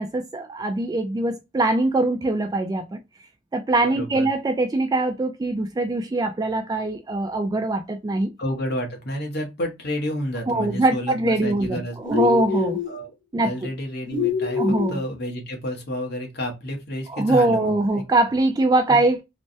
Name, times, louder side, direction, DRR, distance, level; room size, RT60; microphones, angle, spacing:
voice 1, 0.0-3.0 3.5-8.3 10.5-12.8 13.3-13.7 14.6-15.0 17.1-19.2, right 2 dB, 20° right, 0.3 m, -22 dB
voice 2, 3.8-4.3 8.4-12.4 12.9-13.1 13.4-17.7 18.9-19.0, equal, 55° left, 1.0 m, -30 dB
sound 1, 12.0-12.9 14.1-15.0, left 6 dB, 90° left, 1.3 m, -25 dB
3.3 x 2.1 x 2.6 m
head